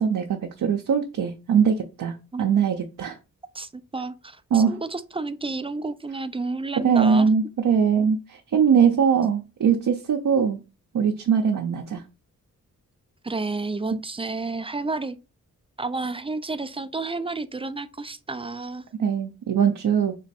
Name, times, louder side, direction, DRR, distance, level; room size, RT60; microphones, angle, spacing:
voice 1, 0.0-3.2 4.5-4.7 6.8-10.6 10.9-12.0 19.0-20.2, right 7 dB, 60° right, 0.6 m, -21 dB
voice 2, 3.5-7.3 13.2-15.2 15.8-18.8, right 3 dB, 15° right, 0.3 m, -31 dB
3.5 x 2.2 x 4.1 m
supercardioid pair, 40°, 37 cm